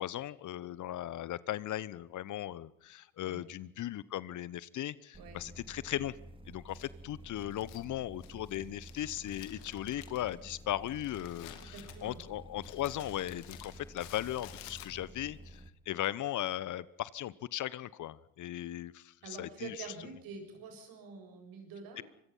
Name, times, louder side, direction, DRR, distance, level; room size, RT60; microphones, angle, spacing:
voice 1, 0.0-6.1 6.5-19.7 22.0-22.1, left 13 dB, 50° left, 20 dB, 1.0 m, -38 dB
sound 1, 5.1-15.7, right 1 dB, 15° right, 2.4 m, -51 dB
Crumpling crinkling, 6.7-15.3, left 12 dB, 75° left, 2.6 m, -54 dB
voice 2, 11.5-12.2 19.2-22.0, right 5 dB, 65° right, 5 dB, 7.2 m, -47 dB
25.0 x 22.0 x 5.6 m, 0.75 s
hypercardioid pair, 65°, 38 cm